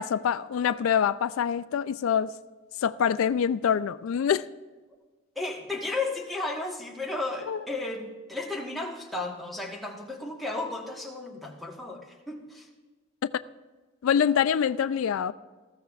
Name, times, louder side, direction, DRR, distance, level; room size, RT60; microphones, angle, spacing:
voice 1, 0.0-2.3 2.8-4.5 7.5-7.6 14.0-15.3, left 8 dB, 85° left, 0.3 m, -25 dB
voice 2, 5.3-12.7, left 2 dB, ahead, 1.3 m, -34 dB
19.5 x 14.5 x 2.4 m
head